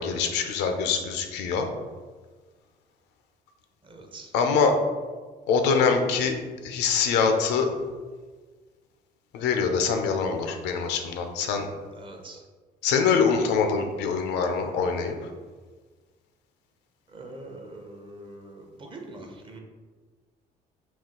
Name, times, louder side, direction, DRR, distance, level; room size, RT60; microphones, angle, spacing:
voice 1, 0.0-1.7 4.3-4.7 5.5-6.3 6.6-7.7 9.3-11.7 12.8-15.1, left 5 dB, 85° left, 5 dB, 0.5 m, -24 dB
voice 2, 3.9-4.3 12.0-12.4 17.1-19.6, right 2 dB, 30° right, 2 dB, 0.6 m, -43 dB
4.2 x 2.4 x 3.7 m, 1.4 s
cardioid pair, 110°, 17 cm